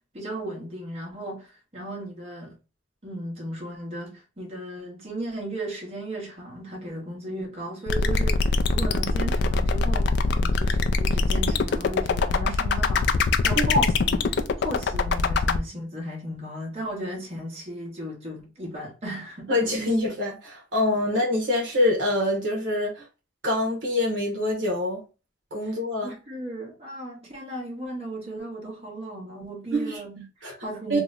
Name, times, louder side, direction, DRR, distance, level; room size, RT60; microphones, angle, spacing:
voice 1, 0.0-2.5 3.0-19.5 25.6-25.7 26.0-30.2 30.6-31.0, right 1 dB, 35° right, 1.2 m, -35 dB
sound 1, 7.9-15.6, left 4 dB, 60° left, 0.3 m, -23 dB
voice 2, 19.5-23.0 23.4-25.0 25.5-26.1 29.7-30.0 30.4-30.5 30.9-31.0, left 1 dB, 65° right, 0.9 m, -25 dB
2.9 x 2.1 x 3.6 m
head